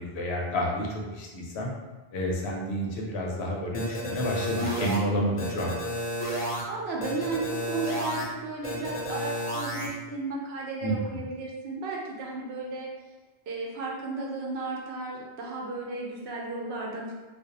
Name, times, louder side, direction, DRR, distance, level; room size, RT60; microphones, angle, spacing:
voice 1, 0.0-1.7 2.1-5.7 10.8-11.2, equal, 85° left, -1 dB, 0.9 m, -30 dB
sound 1, 3.7-5.0 5.4-6.6 7.0-8.2 8.6-9.9, equal, 40° left, 0.5 m, -31 dB
voice 2, 6.2-12.9 13.5-17.1, right 3 dB, 80° right, -2 dB, 0.8 m, -34 dB
2.5 x 2.0 x 2.8 m, 1.2 s
omnidirectional pair, 1.0 m